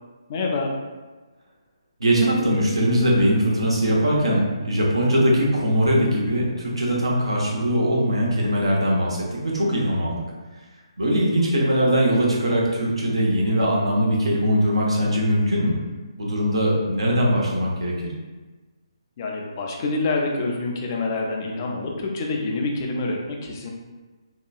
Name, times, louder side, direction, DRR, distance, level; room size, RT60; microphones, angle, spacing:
voice 1, 0.3-0.7 19.2-23.7, left 3 dB, 35° left, 0 dB, 0.4 m, -26 dB
voice 2, 2.0-10.2 11.0-15.8 16.2-18.1, equal, 80° right, -3 dB, 0.8 m, -21 dB
2.8 x 2.2 x 2.4 m, 1.3 s
figure-of-eight pair, 145°, 3 cm